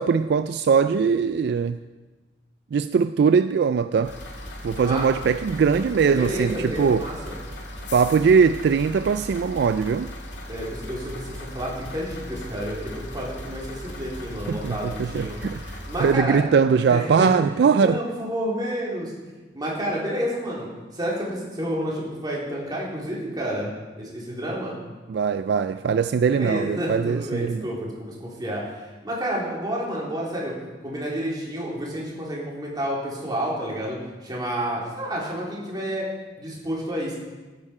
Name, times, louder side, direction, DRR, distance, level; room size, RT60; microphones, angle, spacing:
voice 1, 0.0-1.8 2.7-4.2 4.6-7.0 7.9-10.1 14.5-18.0 25.1-27.7, right 6 dB, 65° right, 0.3 m, -21 dB
sound 1, 4.0-16.2, left 1 dB, 75° left, 2.1 m, -38 dB
voice 2, 6.1-7.4 10.5-16.4 16.9-17.3 17.8-19.1 19.5-20.7 20.9-23.7 24.0-24.8 26.2-30.5 30.8-36.0 36.4-37.1, equal, 25° right, 3.3 m, -30 dB
13.5 x 9.9 x 4.9 m
head